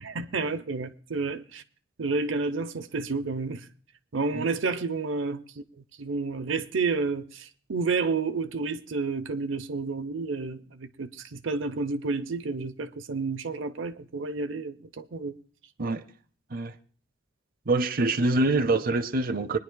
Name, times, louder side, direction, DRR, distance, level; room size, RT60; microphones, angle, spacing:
voice 1, 0.0-1.6 2.0-3.7 4.1-5.6 6.0-15.3, right 4 dB, 80° right, 0.7 m, -30 dB
voice 2, 17.7-19.6, right 2 dB, 50° right, 0.7 m, -25 dB
25.0 x 10.0 x 2.2 m
head